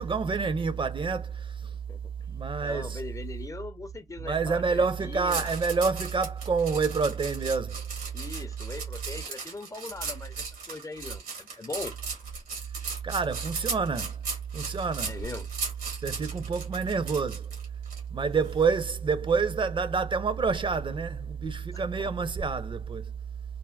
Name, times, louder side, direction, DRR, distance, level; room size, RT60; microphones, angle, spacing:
voice 1, 0.0-1.8 2.3-3.0 4.2-7.8 13.0-14.2 14.5-15.2 16.0-17.5 18.1-23.0, right 5 dB, 35° right, 0.5 m, -28 dB
voice 2, 2.6-5.5 8.1-12.0 15.0-15.5 21.7-22.1, left 3 dB, 20° left, 0.4 m, -40 dB
sound 1, 5.3-18.0 18.4-18.7, right 4 dB, 90° right, 1.2 m, -37 dB
3.3 x 2.1 x 2.2 m
cardioid pair, 60°, 14 cm